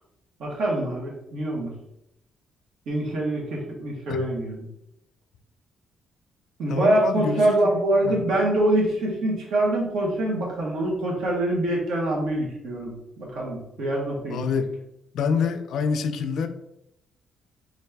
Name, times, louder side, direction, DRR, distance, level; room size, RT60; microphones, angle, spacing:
voice 1, 0.4-1.7 2.9-4.7 6.6-14.4, right 1 dB, 75° right, -2 dB, 1.3 m, -25 dB
voice 2, 6.7-7.7 8.0-8.2 14.3-14.7 15.1-16.5, left 6 dB, 70° left, 9 dB, 0.4 m, -26 dB
4.1 x 2.5 x 3.4 m, 0.81 s
cardioid pair, 90°, 0 cm